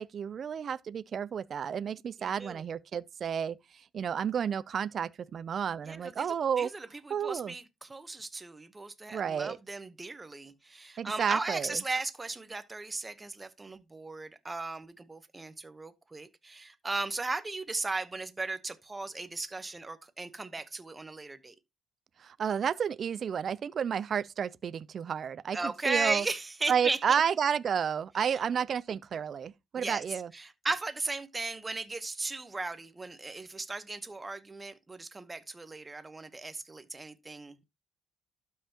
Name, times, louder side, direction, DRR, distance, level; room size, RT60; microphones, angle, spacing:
voice 1, 0.0-3.6 3.9-6.7 7.1-7.6 9.1-9.6 11.0-11.8 22.2-26.3 26.7-30.3, right 7 dB, 45° right, 0.4 m, -31 dB
voice 2, 2.2-2.6 5.9-6.3 6.6-7.6 7.9-21.5 25.5-27.0 29.8-30.0 30.3-37.6, right 3 dB, 15° right, 0.9 m, -36 dB
12.0 x 5.6 x 2.9 m
cardioid pair, 125°, 0 cm